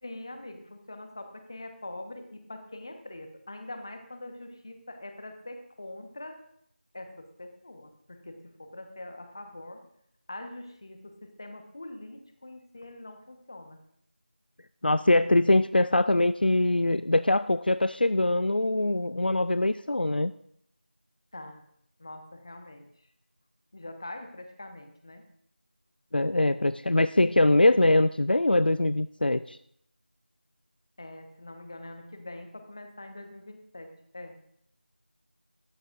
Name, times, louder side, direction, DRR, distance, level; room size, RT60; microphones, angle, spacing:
voice 1, 0.0-6.4 6.9-9.8 10.3-13.8 21.3-21.6 22.0-22.9 23.7-25.2 31.0-34.4, left 1 dB, 25° left, 6 dB, 1.2 m, -43 dB
voice 2, 14.8-20.3 26.1-29.6, left 2 dB, 60° left, 14 dB, 0.4 m, -23 dB
17.5 x 14.0 x 2.6 m, 0.69 s
figure-of-eight pair, 175°, 6 cm